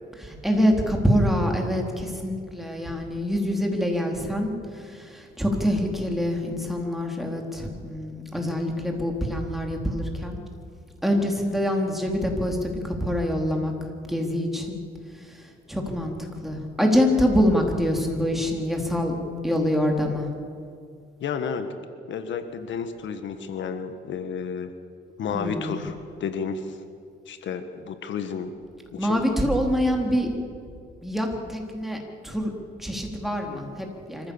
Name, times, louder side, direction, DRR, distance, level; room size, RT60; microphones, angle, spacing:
voice 1, 0.2-10.4 11.0-13.7 14.1-14.8 15.2-19.2 19.4-20.3 25.3-25.8 29.0-30.3 31.0-32.0 32.2-32.5 32.8-34.3, equal, ahead, 1 dB, 3.8 m, -25 dB
voice 2, 21.2-21.8 22.1-24.7 25.2-26.8 27.3-28.5 28.9-29.2, left 6 dB, 70° left, 9 dB, 1.5 m, -31 dB
25.5 x 15.0 x 7.2 m, 2.3 s
cardioid pair, 90°, 20 cm